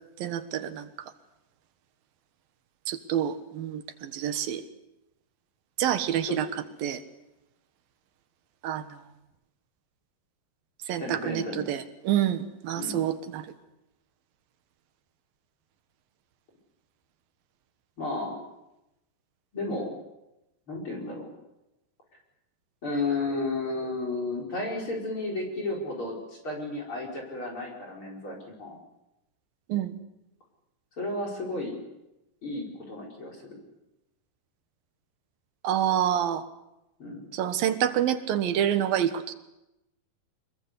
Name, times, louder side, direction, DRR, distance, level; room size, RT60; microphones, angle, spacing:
voice 1, 0.2-0.9 2.9-4.6 5.8-6.5 6.8-7.0 8.6-8.8 10.9-13.4 29.7-29.9 35.6-36.4 37.3-39.3, right 10 dB, 80° right, 10 dB, 3.2 m, -27 dB
voice 2, 11.0-11.7 12.8-13.0 18.0-18.4 19.5-19.9 20.7-21.3 22.8-28.8 31.0-31.8 32.4-33.4 37.0-37.3, left 2 dB, 35° left, 1 dB, 5.6 m, -33 dB
25.0 x 21.5 x 8.2 m, 0.92 s
omnidirectional pair, 4.1 m